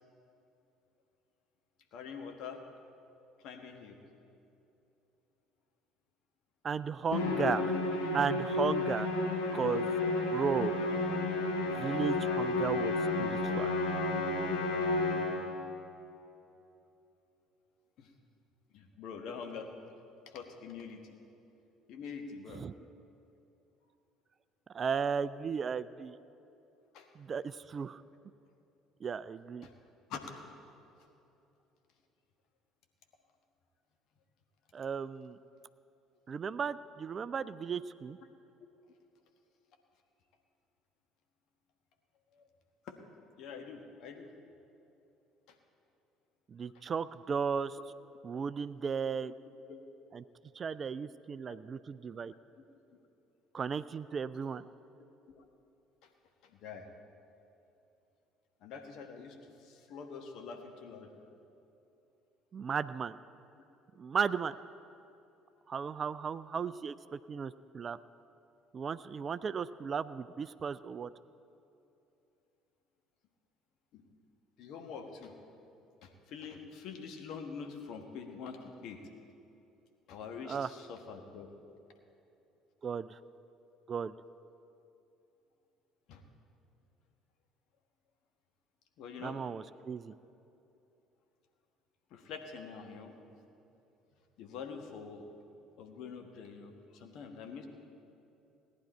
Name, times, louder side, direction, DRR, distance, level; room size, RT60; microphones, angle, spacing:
voice 1, 1.9-2.6 3.4-4.0 18.0-18.1 18.7-19.7 20.3-21.2 21.9-22.6 26.9-27.1 29.6-29.7 30.1-30.3 31.0-31.1 37.4-37.5 42.3-42.5 42.8-43.0 43.4-44.3 45.5-45.6 46.7-46.8 49.7-49.8 51.5-51.6 52.1-52.6 52.9-53.0 54.4-54.5 55.3-55.5 56.0-56.1 56.4-56.9 58.6-61.2 73.9-74.0 74.6-75.3 76.0-79.0 80.1-81.5 86.1-86.2 89.0-89.4 92.1-93.1 94.4-95.3 95.8-97.7, left 5 dB, 55° left, 4 dB, 1.3 m, -45 dB
voice 2, 6.6-7.7 8.1-9.1 9.5-10.7 11.7-13.7 22.6-22.7 24.7-26.2 27.2-28.0 29.0-29.7 34.7-35.4 36.3-38.2 46.5-47.8 48.2-49.3 50.1-50.2 50.5-52.3 53.5-54.6 62.5-63.2 64.0-64.6 65.7-68.0 68.7-71.1 80.5-80.7 82.8-83.2 83.9-84.1 89.2-90.1, right 6 dB, 35° right, 15 dB, 0.3 m, -35 dB
Musical instrument, 7.1-15.6, left 2 dB, 70° left, 1.4 m, -31 dB
17.5 x 10.5 x 4.4 m, 2.9 s
figure-of-eight pair, 55°, 0 cm